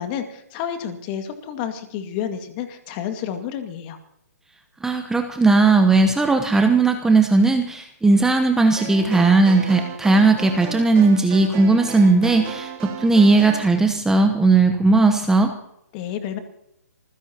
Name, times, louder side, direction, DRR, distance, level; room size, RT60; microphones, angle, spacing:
voice 1, 0.0-4.0 15.9-16.4, left 9 dB, 35° left, 6 dB, 2.1 m, -30 dB
voice 2, 4.8-15.5, right 3 dB, 5° right, 5 dB, 1.0 m, -17 dB
sound 1, 8.8-13.7, right 6 dB, 30° right, 2.8 m, -35 dB
26.5 x 15.5 x 3.0 m, 0.77 s
hypercardioid pair, 140°, 9 cm